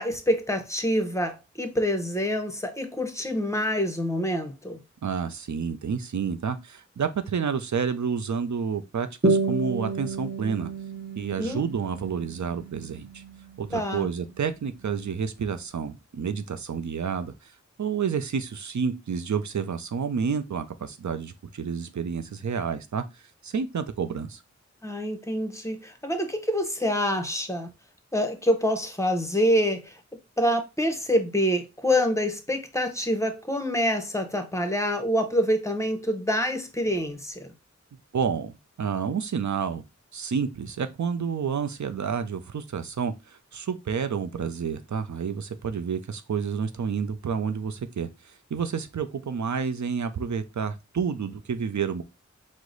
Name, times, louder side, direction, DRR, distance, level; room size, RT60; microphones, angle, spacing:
voice 1, 0.0-4.8 11.4-11.6 13.7-14.1 24.8-27.7 28.1-30.0 30.4-37.5, equal, 10° left, 0.8 m, -26 dB
voice 2, 5.0-10.7 11.2-13.2 13.6-17.5 17.8-24.4 38.1-39.8 40.1-52.0, right 6 dB, 75° right, 0.5 m, -30 dB
sound 1, 9.2-14.2, right 3 dB, 35° right, 0.8 m, -30 dB
4.7 x 2.1 x 3.8 m
wide cardioid pair, 60°, 29 cm